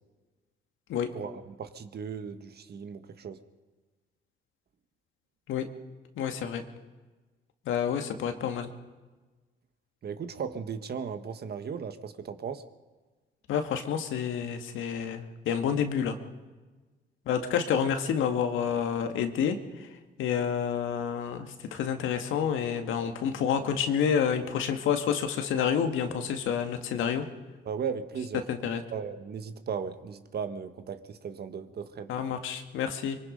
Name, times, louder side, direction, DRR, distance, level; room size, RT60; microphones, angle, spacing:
voice 1, 1.1-3.4 10.0-12.6 27.6-28.4 28.9-32.1, right 6 dB, 55° right, 10 dB, 1.6 m, -36 dB
voice 2, 6.2-6.6 7.7-8.7 13.5-16.2 17.3-19.6 20.2-27.3 28.5-28.8 32.1-33.2, left 8 dB, 85° left, 6 dB, 2.1 m, -29 dB
25.0 x 23.0 x 5.3 m, 1.3 s
cardioid pair, 90°, 20 cm